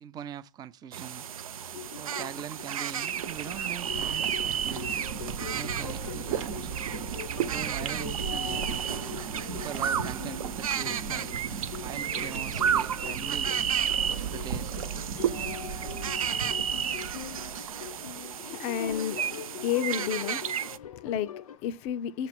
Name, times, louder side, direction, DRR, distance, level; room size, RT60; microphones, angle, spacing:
voice 1, 0.0-1.3 1.9-4.9 5.5-6.7 7.3-8.9 9.5-11.2 11.8-13.5 14.1-14.7 16.8-17.1, right 9 dB, 20° right, 0.4 m, -42 dB
sound 1, 0.9-20.8, right 8 dB, 90° right, 0.4 m, -33 dB
sound 2, 1.7-21.6, left 9 dB, 90° left, 0.6 m, -43 dB
sound 3, 2.9-18.1, right 8 dB, 65° right, 1.0 m, -37 dB
voice 2, 18.2-22.3, left 9 dB, 40° left, 0.4 m, -32 dB
6.8 x 3.0 x 5.8 m
hypercardioid pair, 110°, 18 cm